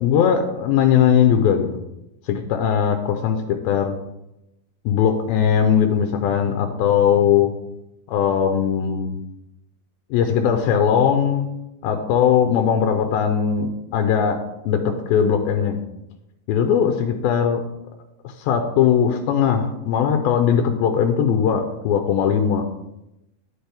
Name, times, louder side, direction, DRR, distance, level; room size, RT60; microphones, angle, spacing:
voice 1, 0.0-1.7 2.3-4.0 4.9-7.5 8.1-9.2 10.1-11.5 11.8-14.4 14.7-15.8 16.5-17.6 18.4-22.6, left 8 dB, 85° left, 6 dB, 2.5 m, -19 dB
9.8 x 8.9 x 3.5 m, 0.88 s
omnidirectional pair, 4.3 m